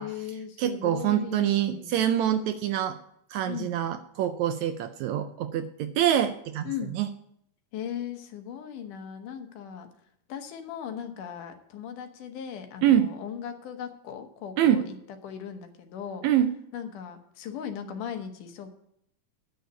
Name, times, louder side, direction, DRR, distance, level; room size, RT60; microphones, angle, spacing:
voice 1, 0.0-2.0 3.5-3.7 6.7-6.9 7.7-9.9 10.3-14.9 15.2-16.3 16.7-18.7, left 8 dB, 80° left, 6 dB, 2.6 m, -38 dB
voice 2, 0.6-3.0 3.3-7.1 12.8-13.1 14.6-14.8 16.2-16.5, right 10 dB, 80° right, 9 dB, 1.7 m, -25 dB
9.1 x 6.7 x 8.0 m, 0.72 s
omnidirectional pair, 3.6 m